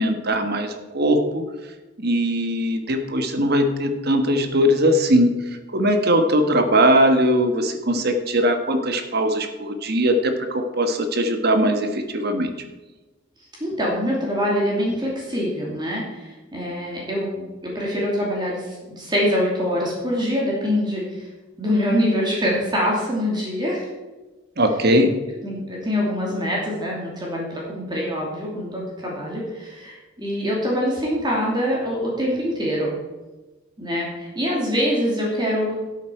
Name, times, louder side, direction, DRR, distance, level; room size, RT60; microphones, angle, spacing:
voice 1, 0.0-1.4 2.0-5.3 5.7-12.5 24.6-25.1, equal, 50° right, 7 dB, 1.4 m, -20 dB
voice 2, 13.6-21.1 21.6-23.9 25.4-32.9 33.8-35.7, equal, 20° right, -4 dB, 2.8 m, -24 dB
12.5 x 8.3 x 4.6 m, 1.2 s
head